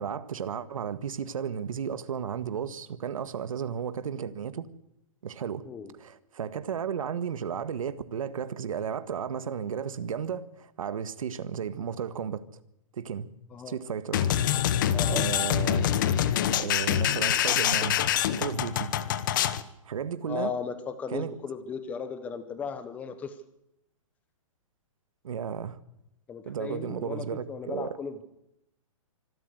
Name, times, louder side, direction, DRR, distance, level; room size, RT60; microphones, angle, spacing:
voice 1, 0.0-4.7 5.2-5.6 6.0-10.5 10.8-12.4 13.0-13.3 13.7-14.3 15.1-15.9 16.5-18.0 18.4-18.9 19.9-20.5 21.1-21.3 25.2-25.8 26.5-27.9, right 7 dB, 75° right, 1.7 m, -33 dB
voice 2, 5.6-5.9 13.5-13.8 14.9-15.3 20.3-23.3 26.3-28.2, left 6 dB, 10° left, 0.9 m, -36 dB
sound 1, 14.1-19.6, left 10 dB, 35° left, 1.1 m, -25 dB
25.0 x 13.5 x 8.0 m
hypercardioid pair, 170°, 18 cm